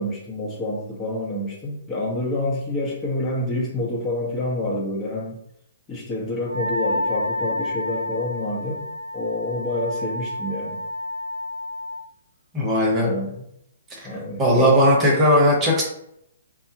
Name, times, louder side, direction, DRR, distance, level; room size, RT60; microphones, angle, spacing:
voice 1, 0.0-5.4 5.9-8.9 9.1-10.8 12.9-13.4 14.0-14.8, left 1 dB, 20° left, -4 dB, 0.9 m, -28 dB
Wind instrument woodwind instrument, 6.5-12.0, left 1 dB, 85° right, 0.3 m, -29 dB
voice 2, 12.5-13.1 14.0-14.1 14.4-15.8, equal, 20° right, -2 dB, 1.1 m, -17 dB
4.3 x 2.3 x 2.9 m, 0.75 s
hypercardioid pair, 135°, 0 cm